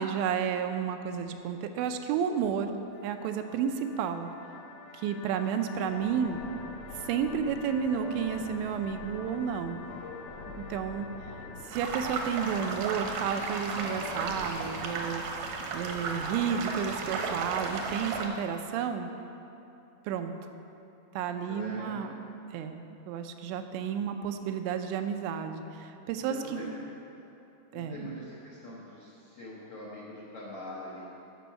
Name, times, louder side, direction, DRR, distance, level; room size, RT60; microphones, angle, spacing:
voice 1, 0.0-2.7 3.0-4.3 4.9-6.4 7.0-9.8 10.6-11.1 11.7-15.2 15.7-19.1 20.1-20.3 21.2-22.1 22.5-26.7 27.7-28.0, right 7 dB, 90° right, 7 dB, 2.9 m, -31 dB
sound 1, 2.9-14.9, left 4 dB, 90° left, 1.8 m, -45 dB
sound 2, 11.7-18.3, right 4 dB, 70° right, 2.1 m, -34 dB
voice 2, 21.4-22.1 26.2-26.8 27.1-27.2 27.7-31.0, left 1 dB, 70° left, -7 dB, 1.4 m, -43 dB
13.5 x 6.2 x 5.7 m, 2.8 s
omnidirectional pair, 5.0 m